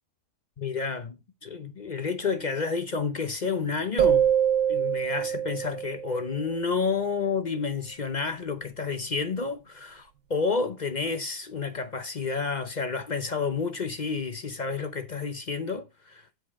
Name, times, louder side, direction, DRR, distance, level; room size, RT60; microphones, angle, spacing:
voice 1, 0.6-4.3 4.7-16.2, left 5 dB, 45° left, 0.6 m, -30 dB
sound 1, 4.0-6.6, right 9 dB, 65° right, 1.1 m, -25 dB
7.8 x 7.6 x 3.6 m
omnidirectional pair, 1.7 m